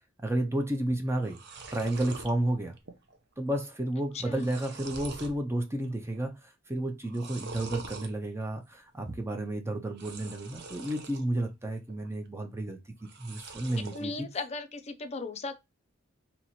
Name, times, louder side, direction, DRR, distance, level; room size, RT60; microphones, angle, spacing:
voice 1, 0.2-1.4 1.7-2.8 3.4-12.8 13.2-14.1, right 1 dB, 15° right, 0.6 m, -31 dB
sound 1, 0.8-0.9 1.1-2.3 2.8-3.2 3.4-3.5 4.1-5.4 5.8-6.3 7.0-8.1 9.9-11.2 11.7-12.3 13.0-14.0, right 4 dB, 55° right, 0.7 m, -45 dB
voice 2, 4.1-4.5 13.9-15.6, left 3 dB, 30° left, 0.5 m, -37 dB
2.9 x 2.8 x 4.1 m
head